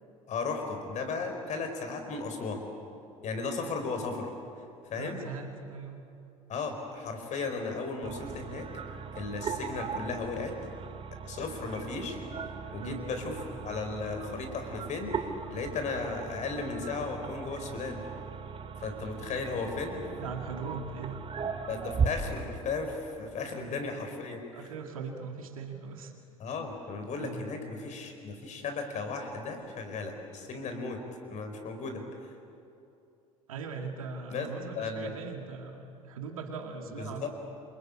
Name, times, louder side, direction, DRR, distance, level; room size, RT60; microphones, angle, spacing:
voice 1, 0.3-2.6 3.2-4.3 4.9-5.2 6.5-8.7 9.1-10.5 11.2-12.2 12.7-13.3 13.6-15.2 15.5-18.0 18.8-20.0 21.7-24.7 26.4-31.0 31.3-32.0 34.3-34.5 34.8-35.1 37.0-37.3, left 4 dB, 40° left, 5 dB, 4.6 m, -35 dB
voice 2, 5.0-6.0 12.8-13.1 20.2-21.2 23.6-23.9 24.5-26.1 27.2-27.5 33.5-37.3, right 5 dB, 75° right, 4 dB, 2.1 m, -40 dB
sound 1, 8.0-22.1, right 6 dB, 30° right, 2.1 m, -38 dB
28.5 x 23.0 x 8.6 m, 2.7 s
figure-of-eight pair, 65°, 18 cm